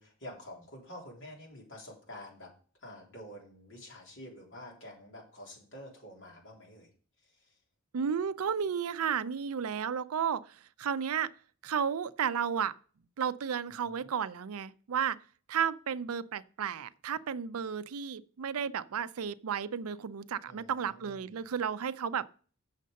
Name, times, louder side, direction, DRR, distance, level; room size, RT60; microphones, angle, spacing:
voice 1, 0.0-2.5 2.8-6.9 7.2-7.5 13.8-14.1 20.5-21.4, left 1 dB, 60° left, 3.5 m, -48 dB
voice 2, 7.9-11.3 11.6-12.8 13.2-15.2 15.5-22.3, right 7 dB, 75° right, 0.5 m, -33 dB
7.5 x 6.6 x 5.3 m
head